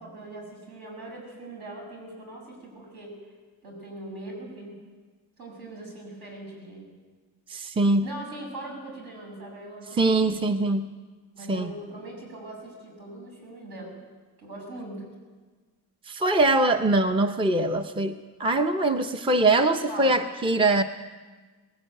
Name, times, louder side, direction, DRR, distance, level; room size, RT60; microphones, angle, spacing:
voice 1, 0.0-3.2 3.6-4.8 5.4-6.9 8.0-10.6 11.4-14.0 14.4-15.1 19.9-20.2, right 1 dB, 70° right, 0 dB, 7.5 m, -41 dB
voice 2, 7.5-8.1 10.0-10.9 11.5-11.7 16.1-20.8, right 2 dB, 15° right, 8 dB, 0.6 m, -23 dB
20.0 x 17.0 x 9.1 m, 1.4 s
wide cardioid pair, 170°, 39 cm